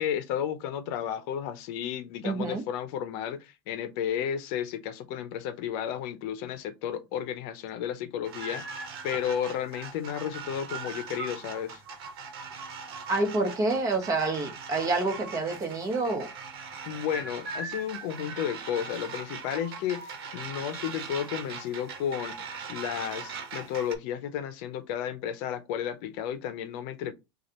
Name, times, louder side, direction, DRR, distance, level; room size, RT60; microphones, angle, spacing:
voice 1, 0.0-11.8 16.9-27.1, left 9 dB, 60° left, 0.7 m, -33 dB
voice 2, 2.2-2.6 13.1-16.3, right 3 dB, 25° right, 1.2 m, -28 dB
sound 1, 8.2-23.9, right 5 dB, 85° right, 1.1 m, -40 dB
6.3 x 2.4 x 2.9 m
supercardioid pair, 140°, 12 cm